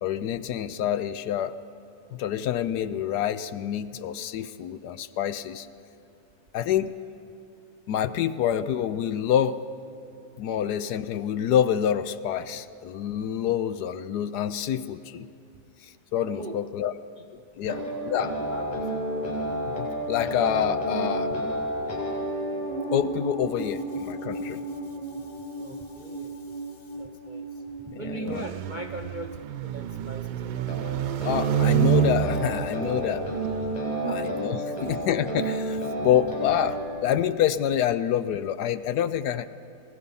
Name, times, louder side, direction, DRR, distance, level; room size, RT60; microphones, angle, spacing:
voice 1, 0.0-1.6 2.1-5.7 6.5-7.0 7.9-9.6 10.4-15.3 15.8-16.9 17.6-18.3 19.7-21.3 22.9-24.6 27.9-28.5 31.2-33.2 34.1-39.5, left 10 dB, 75° left, 13 dB, 1.2 m, -27 dB
sound 1, 17.6-29.6 30.6-36.8, right 1 dB, 20° left, 6.4 m, -32 dB
voice 2, 17.6-18.7 25.6-26.3 27.0-27.5 28.0-30.7 33.1-33.2 34.0-34.2 34.7-34.8, right 3 dB, 45° right, 3 dB, 0.6 m, -39 dB
sound 2, 28.3-33.8, right 11 dB, 85° right, 1.3 m, -28 dB
27.5 x 18.0 x 5.5 m, 2.8 s
omnidirectional pair, 1.8 m